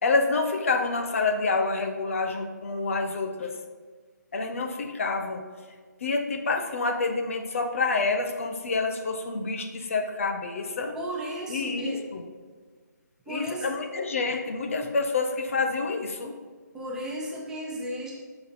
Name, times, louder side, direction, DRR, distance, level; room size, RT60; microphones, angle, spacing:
voice 1, 0.0-3.6 4.3-5.4 6.0-11.0 11.5-12.2 13.3-16.3, left 3 dB, 45° left, 5 dB, 1.0 m, -28 dB
voice 2, 10.9-12.0 13.3-13.7 16.7-18.1, right 1 dB, 5° right, -3 dB, 0.7 m, -34 dB
11.5 x 6.0 x 5.4 m, 1.5 s
figure-of-eight pair, 160°, 10 cm